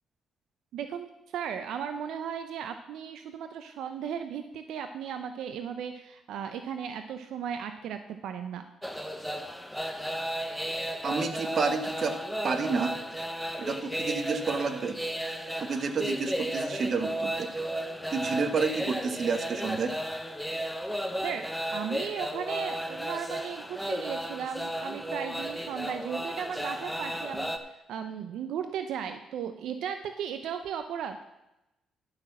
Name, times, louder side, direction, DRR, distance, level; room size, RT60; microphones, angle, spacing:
voice 1, 0.7-8.6 21.2-31.2, right 8 dB, 80° right, 8 dB, 0.6 m, -36 dB
sound 1, 8.8-27.6, equal, ahead, 1.0 m, -34 dB
voice 2, 11.0-12.2 12.4-13.0 13.6-15.0 15.6-17.5 18.1-19.9, right 4 dB, 50° right, 8 dB, 1.2 m, -30 dB
11.5 x 5.9 x 7.4 m, 0.94 s
cardioid pair, 90°, 0 cm